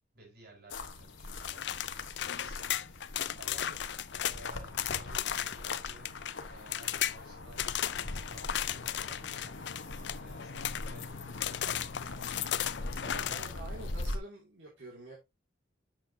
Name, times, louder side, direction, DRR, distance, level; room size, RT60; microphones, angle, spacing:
voice 1, 0.1-13.8, right 1 dB, 55° right, 4.8 m, -55 dB
sound 1, 0.7-14.2, left 3 dB, 85° left, 1.2 m, -42 dB
sound 2, 1.4-6.3 6.7-7.2 7.6-11.1 11.4-13.5, left 10 dB, 65° left, 0.5 m, -35 dB
voice 2, 13.0-15.2, right 2 dB, 70° right, 2.3 m, -47 dB
9.0 x 7.2 x 2.7 m
head